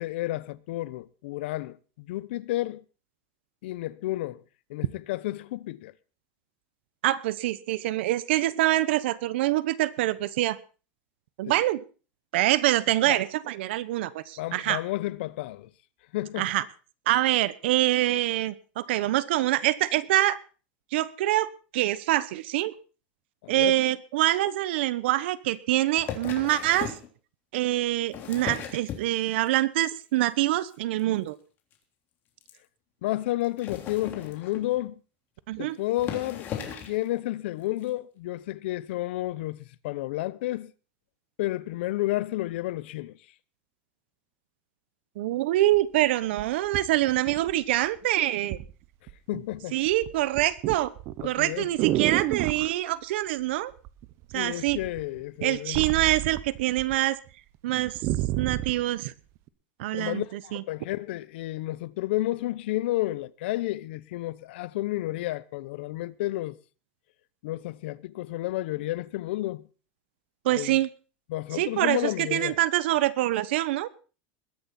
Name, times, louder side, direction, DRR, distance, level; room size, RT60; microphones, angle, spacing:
voice 1, 0.0-2.8 3.6-4.4 4.7-5.9 11.5-11.6 13.1-13.2 14.4-15.7 16.1-16.5 23.4-23.8 33.0-34.9 35.6-36.5 36.9-39.6 39.8-40.7 41.4-43.1 49.3-49.8 51.2-51.7 54.3-55.8 59.9-66.6 67.4-69.6 70.5-70.8 71.3-72.6, left 16 dB, 80° left, 0.8 m, -31 dB
voice 2, 7.0-10.6 11.4-11.8 12.3-14.8 16.4-16.6 17.1-20.4 20.9-22.7 23.5-26.9 27.5-31.4 35.5-35.8 45.2-48.6 49.7-50.9 51.2-53.7 54.3-54.8 55.4-57.2 57.6-58.0 58.4-59.1 59.8-60.6 70.4-70.9 71.5-73.9, right 15 dB, 80° right, 1.0 m, -25 dB
sound 1, 26.0-27.1 27.9-29.5 29.9-30.3 30.6-30.7 31.0-31.1 31.3-31.4 31.7-31.8 32.4-32.5 33.4-34.8 35.5-35.6 35.9-37.0 37.8-37.9, left 8 dB, 35° left, 3.3 m, -37 dB
sound 2, 45.7-45.8 46.4-47.9 48.5-48.7 49.1-49.5 49.8-52.7 53.8-54.3 54.7-56.9 57.3-57.4 57.7-58.8 59.5-59.6, right 15 dB, 50° right, 1.0 m, -31 dB
21.0 x 10.5 x 4.3 m
supercardioid pair, 155°, 6 cm